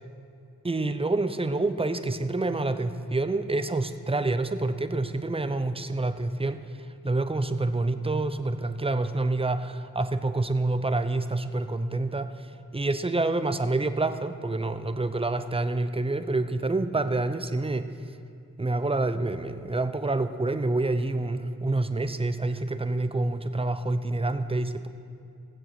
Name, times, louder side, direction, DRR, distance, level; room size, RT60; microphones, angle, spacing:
voice 1, 0.6-6.6 7.0-12.3 12.7-17.9 18.6-24.9, right 2 dB, 15° right, 10 dB, 0.7 m, -27 dB
16.5 x 7.5 x 6.0 m, 2.4 s
cardioid pair, 40°, 37 cm